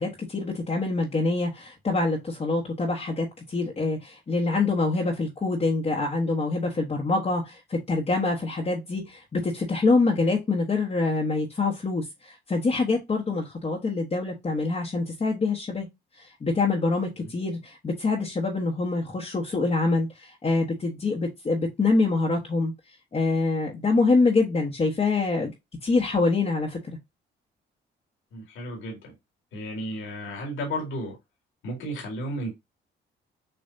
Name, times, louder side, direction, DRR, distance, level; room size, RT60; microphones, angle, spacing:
voice 1, 0.0-15.9 16.2-22.7 23.1-25.5 25.8-27.0, left 3 dB, 30° left, 1.2 m, -25 dB
voice 2, 28.3-29.1 29.5-31.2 31.6-32.5, equal, 80° left, 2.5 m, -33 dB
6.9 x 2.6 x 2.7 m
cardioid pair, 90°, 20 cm